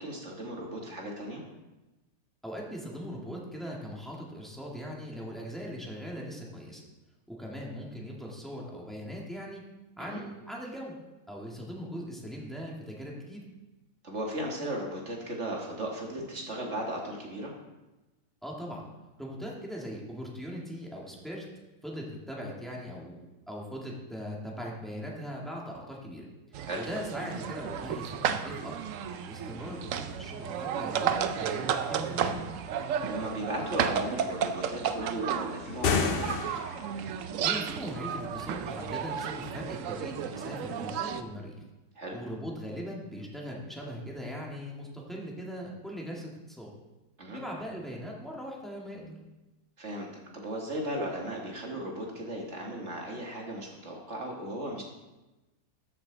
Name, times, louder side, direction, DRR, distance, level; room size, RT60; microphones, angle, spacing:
voice 1, 0.0-1.4 10.0-10.2 14.0-17.5 26.6-26.8 29.5-29.7 33.0-36.5 42.0-42.2 47.2-47.4 49.8-50.1 50.3-54.8, right 1 dB, 40° right, 0 dB, 1.8 m, -36 dB
voice 2, 2.4-6.8 7.3-9.6 10.0-11.0 11.3-13.4 18.4-18.8 19.2-21.4 21.8-23.2 23.5-28.9 29.3-32.5 37.4-41.5 42.1-46.7 47.3-49.2, equal, ahead, -3 dB, 1.6 m, -40 dB
sound 1, 26.5-41.2, right 8 dB, 70° right, 0.7 m, -33 dB
sound 2, 35.7-37.0, left 5 dB, 80° left, 0.5 m, -29 dB
13.0 x 6.6 x 3.9 m, 1.1 s
omnidirectional pair, 1.9 m